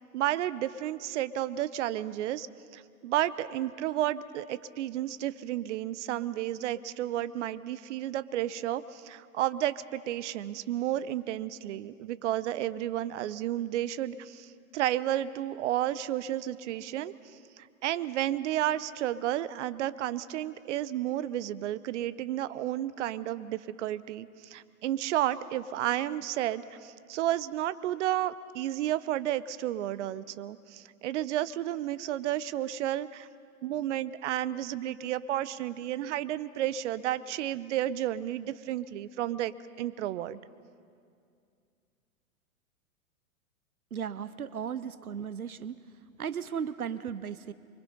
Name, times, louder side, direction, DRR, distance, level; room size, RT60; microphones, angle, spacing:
voice 1, 0.1-2.5 2.7-17.1 17.6-33.3 33.6-39.5 39.8-40.4, right 13 dB, 55° right, 16 dB, 0.8 m, -32 dB
voice 2, 43.9-45.8 46.2-47.5, right 7 dB, 90° right, 15 dB, 0.7 m, -36 dB
25.5 x 24.0 x 5.4 m, 2.4 s
figure-of-eight pair, 105°, 42 cm